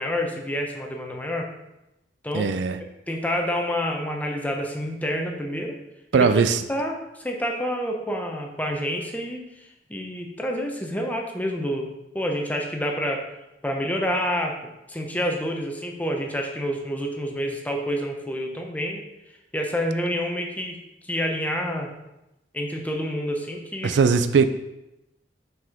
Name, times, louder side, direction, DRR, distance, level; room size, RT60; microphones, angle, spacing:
voice 1, 0.0-1.5 2.2-2.5 3.1-5.8 6.1-6.3 6.7-9.4 9.9-11.9 12.1-13.2 13.6-14.5 14.9-19.0 19.5-20.8 21.1-21.9 22.5-24.0, equal, 10° left, 1 dB, 0.8 m, -28 dB
voice 2, 2.3-2.8 6.1-6.6 23.8-24.5, right 5 dB, 75° right, 11 dB, 0.4 m, -19 dB
6.1 x 4.8 x 3.6 m, 0.91 s
head